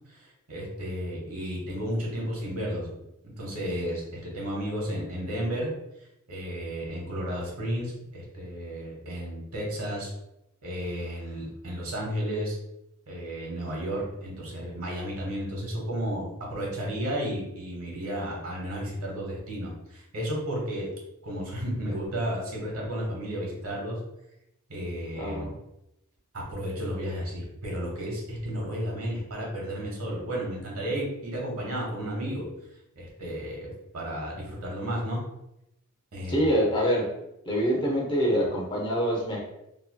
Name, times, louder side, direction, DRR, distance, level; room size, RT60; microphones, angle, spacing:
voice 1, 0.1-2.9 3.2-5.7 6.3-10.1 10.6-12.6 13.1-20.9 21.2-24.0 24.7-25.5 26.3-32.5 33.0-35.2 36.1-36.5, equal, 80° right, -2 dB, 1.1 m, -33 dB
voice 2, 25.1-25.5 36.3-37.1 37.4-39.4, equal, 20° left, -3 dB, 0.7 m, -25 dB
2.9 x 2.7 x 2.2 m, 0.85 s
head